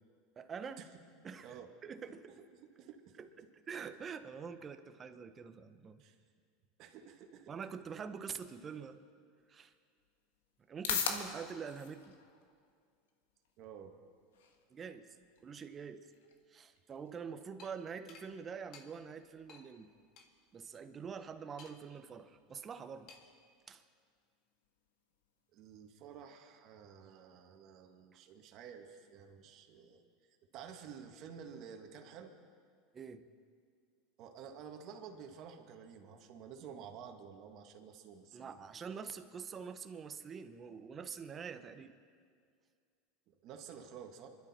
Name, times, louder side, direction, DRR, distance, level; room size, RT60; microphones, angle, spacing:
voice 1, 0.4-0.8 1.2-2.4 3.2-6.0 7.5-9.0 9.5-9.7 10.7-12.2 14.7-15.1 15.4-16.1 16.5-19.9 20.5-23.1 23.7-23.8 32.9-33.3 38.3-42.0, right 6 dB, 30° right, 9 dB, 1.1 m, -46 dB
voice 2, 2.8-3.2 6.0-6.2 6.8-7.5 13.6-14.0 25.5-30.0 30.5-32.3 34.2-38.7 43.3-44.3, right 7 dB, 55° right, 4 dB, 1.9 m, -51 dB
sound 1, 9.4-26.3, left 6 dB, 90° left, 1.6 m, -47 dB
sound 2, 17.6-17.7 18.1-18.3 18.7-18.9 19.5-19.7 20.2-20.3 21.6-22.0 23.1-23.4, left 5 dB, 50° left, 2.0 m, -56 dB
26.0 x 12.0 x 4.4 m, 2.1 s
supercardioid pair, 110°, 0 cm